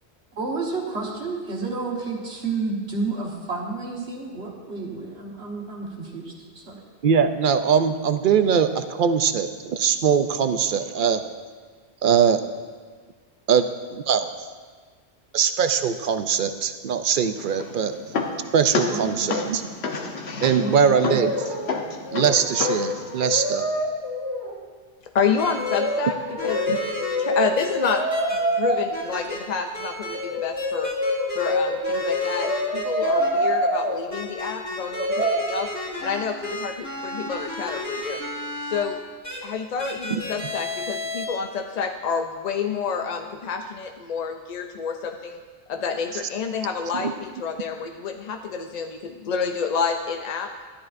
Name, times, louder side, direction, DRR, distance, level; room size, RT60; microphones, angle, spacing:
voice 1, 0.4-6.8 18.9-19.2 20.6-20.9, right 3 dB, 75° right, -2 dB, 1.6 m, -30 dB
voice 2, 7.0-11.2 12.0-12.4 13.5-14.3 15.3-17.9 18.5-19.6 20.4-21.3 22.1-23.7 26.7-26.8 40.1-40.2, right 7 dB, 60° right, 10 dB, 0.6 m, -21 dB
sound 1, 17.4-23.2, left 4 dB, 75° left, 1.2 m, -30 dB
Brass instrument, 21.1-21.8 22.1-24.6 25.6-28.8 30.1-34.0 34.9-35.4, left 1 dB, 30° left, 2.8 m, -26 dB
voice 3, 25.1-26.2 26.4-26.6 26.9-28.0 28.6-30.9 31.3-35.7 36.0-38.2 38.7-39.0 39.4-45.4 45.7-50.5, left 6 dB, 55° left, 6 dB, 0.5 m, -28 dB
sound 2, 25.4-25.8 26.4-27.2 27.6-28.4 28.9-29.4 29.7-30.2 30.6-31.5 31.8-33.3 34.1-38.8 39.2-39.4 39.8-41.2, left 1 dB, 15° left, 2.3 m, -33 dB
13.5 x 11.5 x 2.5 m, 1.5 s
omnidirectional pair, 1.1 m